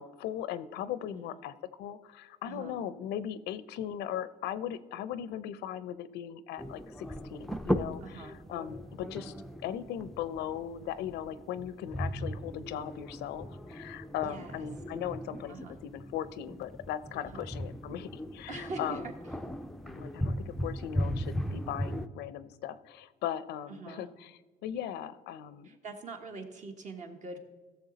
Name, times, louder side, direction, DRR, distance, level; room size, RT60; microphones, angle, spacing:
voice 1, 0.0-9.3 9.6-15.6 15.8-19.0 19.8-25.7, left 10 dB, 85° left, 15 dB, 0.6 m, -38 dB
voice 2, 2.4-2.8 8.0-8.4 14.2-14.6 15.5-15.7 17.2-17.5 18.5-19.0 23.8-24.0 25.6-27.4, right 3 dB, 45° right, 5 dB, 1.4 m, -43 dB
sound 1, 6.6-22.1, equal, ahead, 0.4 m, -37 dB
15.5 x 6.9 x 4.0 m, 1.3 s
cardioid pair, 110°, 17 cm